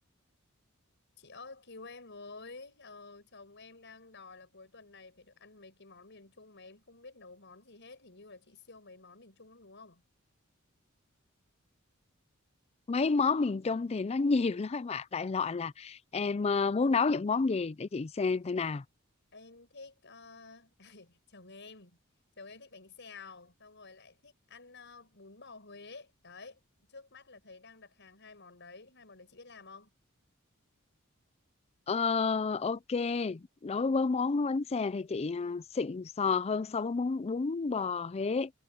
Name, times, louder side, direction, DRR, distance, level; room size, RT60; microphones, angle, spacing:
voice 1, 1.2-10.0 19.3-22.0 22.4-26.6 26.9-29.9, left 3 dB, 60° left, 6.6 m, -51 dB
voice 2, 12.9-18.8 31.9-38.5, left 4 dB, 30° left, 0.4 m, -30 dB
head